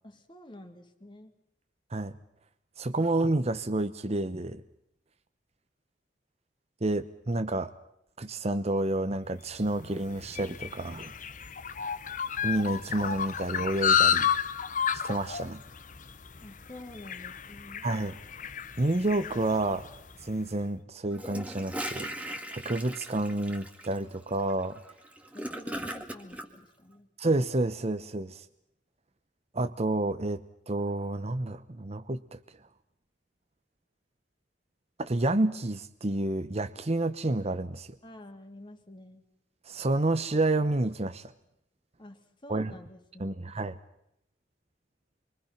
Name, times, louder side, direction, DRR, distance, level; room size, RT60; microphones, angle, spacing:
voice 1, 0.0-1.3 16.4-17.9 25.3-27.1 38.0-39.2 42.0-43.4, left 1 dB, 25° left, 5 dB, 2.6 m, -49 dB
voice 2, 2.8-4.6 6.8-7.7 8.2-11.1 12.4-14.3 14.9-15.6 17.8-18.2 18.8-19.9 20.2-24.7 27.2-28.4 29.5-32.4 35.0-37.9 39.7-41.3 42.5-42.8 43.2-43.8, right 2 dB, 35° right, 10 dB, 0.9 m, -29 dB
sound 1, 9.6-20.2, left 8 dB, 45° left, 1.0 m, -31 dB
Gurgling / Toilet flush, 21.1-26.5, equal, 10° right, 1.9 m, -39 dB
28.0 x 24.0 x 5.8 m, 0.76 s
head